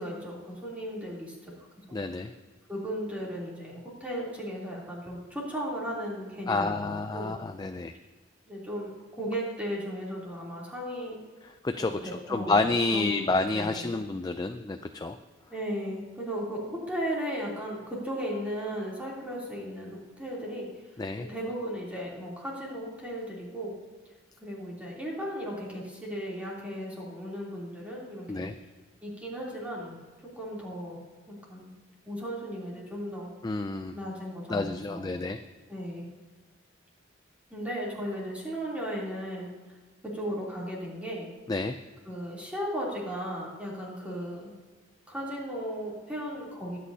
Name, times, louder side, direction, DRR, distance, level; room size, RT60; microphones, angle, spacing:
voice 1, 0.0-1.5 1.9-2.0 2.7-7.3 8.5-11.2 11.8-12.6 12.9-13.9 15.5-20.7 21.2-23.8 24.4-28.5 29.0-30.0 30.4-31.0 31.3-31.7 32.0-33.3 33.9-35.1 35.7-36.0 37.5-39.5 40.0-41.3 42.1-44.5 45.1-46.8, equal, 5° right, -5 dB, 3.1 m, -36 dB
voice 2, 1.9-2.3 6.5-7.9 11.6-12.0 12.3-15.1 21.0-21.3 28.3-28.5 33.4-33.9 34.5-35.4 41.5-41.8, left 3 dB, 20° left, 7 dB, 0.3 m, -29 dB
22.0 x 8.4 x 2.8 m, 1.3 s
head